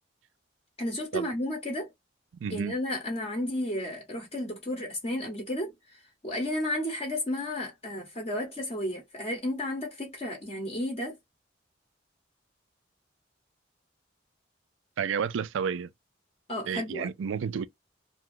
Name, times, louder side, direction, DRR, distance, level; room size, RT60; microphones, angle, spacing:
voice 1, 0.8-1.9 2.5-11.2 16.5-17.1, left 1 dB, 30° left, 0.8 m, -33 dB
voice 2, 2.4-2.7 15.0-15.9 16.7-17.6, right 7 dB, 85° right, 0.4 m, -31 dB
2.5 x 2.3 x 3.6 m
head